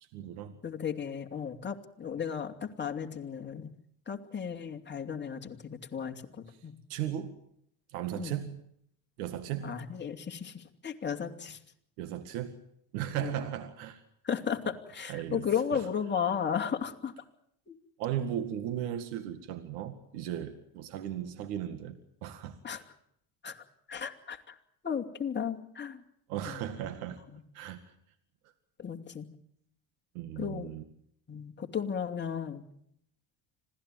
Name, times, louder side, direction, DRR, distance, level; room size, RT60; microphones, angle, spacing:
voice 1, 0.0-0.6 6.9-7.4 7.9-8.6 9.2-9.7 12.0-12.6 12.9-14.0 15.1-15.4 15.7-15.8 18.0-22.6 26.3-27.2 27.5-27.9 30.1-30.8, right 11 dB, 90° right, 10 dB, 2.2 m, -36 dB
voice 2, 0.6-3.7 4.1-6.8 8.2-8.3 9.6-11.6 13.2-13.5 14.2-17.1 17.7-17.8 22.6-22.8 23.4-23.6 23.9-24.6 24.8-26.0 26.4-26.6 27.3-27.4 28.8-29.3 30.4-30.7 31.3-32.6, left 7 dB, 25° left, 3 dB, 2.9 m, -35 dB
26.5 x 17.0 x 9.3 m, 0.70 s
supercardioid pair, 100°, 43 cm